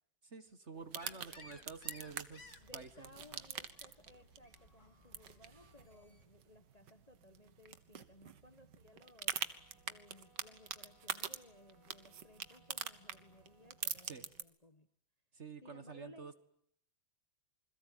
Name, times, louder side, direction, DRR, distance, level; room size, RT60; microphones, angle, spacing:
voice 1, 0.2-2.4 2.7-3.1 3.3-3.4 14.0-14.3 15.3-16.3, right 5 dB, 40° right, 10 dB, 1.8 m, -49 dB
voice 2, 0.8-9.4 9.9-14.9 15.6-16.3, left 1 dB, 25° left, 8 dB, 1.2 m, -61 dB
sound 1, 0.8-14.4, right 8 dB, 70° right, 1.9 m, -46 dB
sound 2, 1.0-6.2, left 3 dB, 40° left, 2.8 m, -60 dB
sound 3, 9.2-13.9, right 1 dB, 90° left, 6.0 m, -71 dB
28.5 x 21.5 x 9.3 m, 0.72 s
omnidirectional pair, 2.0 m